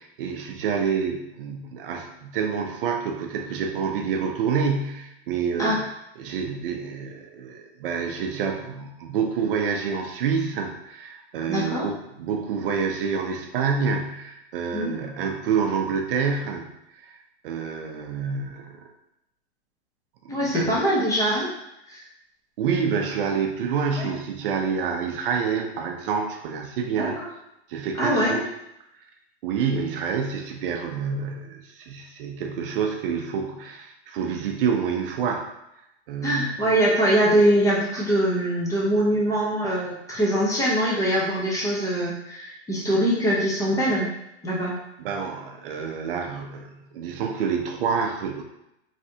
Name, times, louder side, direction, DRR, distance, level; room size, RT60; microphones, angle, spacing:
voice 1, 0.0-5.9 6.2-16.7 16.9-17.1 17.4-18.8 20.2-20.8 22.6-27.2 27.7-28.4 29.4-35.5 36.1-36.5 45.0-48.4, right 6 dB, 55° right, 3 dB, 0.5 m, -27 dB
voice 2, 11.5-11.8 14.7-14.9 20.3-21.5 21.9-22.0 23.9-24.1 27.0-27.1 28.0-28.3 36.2-44.1 44.4-44.8, right 1 dB, 10° left, -5 dB, 0.5 m, -23 dB
3.3 x 2.5 x 2.7 m, 0.85 s
hypercardioid pair, 125°, 33 cm